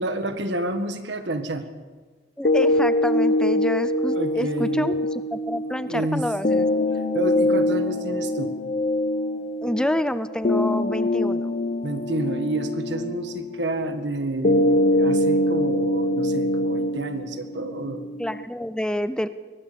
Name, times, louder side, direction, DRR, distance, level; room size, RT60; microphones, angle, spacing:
voice 1, 0.0-1.7 4.1-4.9 5.6-6.3 7.1-8.5 11.8-18.1, right 1 dB, 75° right, 8 dB, 1.7 m, -29 dB
sound 1, 2.4-18.4, left 1 dB, 45° left, 0.9 m, -24 dB
voice 2, 2.4-6.8 9.6-11.6 18.2-19.3, equal, 5° left, 13 dB, 0.6 m, -28 dB
23.0 x 18.5 x 6.9 m, 1.4 s
head